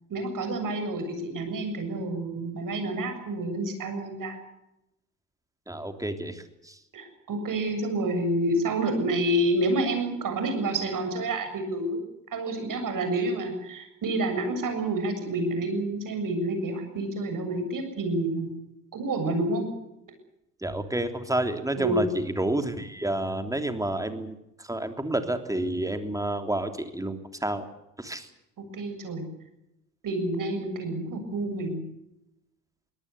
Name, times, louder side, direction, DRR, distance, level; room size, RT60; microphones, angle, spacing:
voice 1, 0.1-4.4 6.9-12.0 12.3-18.5 18.9-19.7 21.8-22.0 28.6-29.3 30.0-31.8, right 1 dB, 45° right, 7 dB, 7.4 m, -28 dB
voice 2, 5.7-6.8 20.6-27.7 28.0-28.3, right 1 dB, 5° right, 7 dB, 3.2 m, -30 dB
23.5 x 18.0 x 8.3 m, 0.87 s
hypercardioid pair, 60°, 45 cm